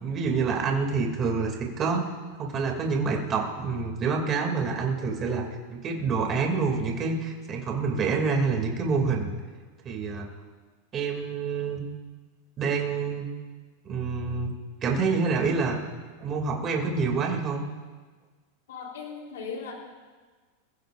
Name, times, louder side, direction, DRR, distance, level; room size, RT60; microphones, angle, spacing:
voice 1, 0.0-2.1 2.4-5.4 5.7-9.3 9.8-10.3 10.9-11.8 12.6-13.2 13.8-14.5 14.8-15.8 16.2-17.6, right 4 dB, 30° right, 1 dB, 2.6 m, -27 dB
voice 2, 18.7-19.7, left 5 dB, 90° left, 0 dB, 3.6 m, -37 dB
27.5 x 16.0 x 2.6 m, 1.4 s
supercardioid pair, 140°, 0 cm